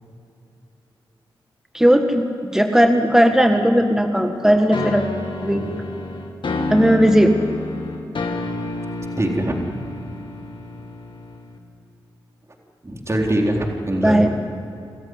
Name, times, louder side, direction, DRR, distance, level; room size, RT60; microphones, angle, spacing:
voice 1, 1.7-2.2 2.5-5.0 5.4-5.7 6.7-7.3 14.0-14.3, equal, 5° right, 5 dB, 1.8 m, -16 dB
sound 1, 4.7-11.6, left 2 dB, 60° left, 2.5 m, -29 dB
voice 2, 9.2-9.5 12.8-14.3, right 1 dB, 30° right, 1 dB, 4.0 m, -23 dB
26.0 x 14.0 x 9.7 m, 2.8 s
cardioid pair, 50°, 9 cm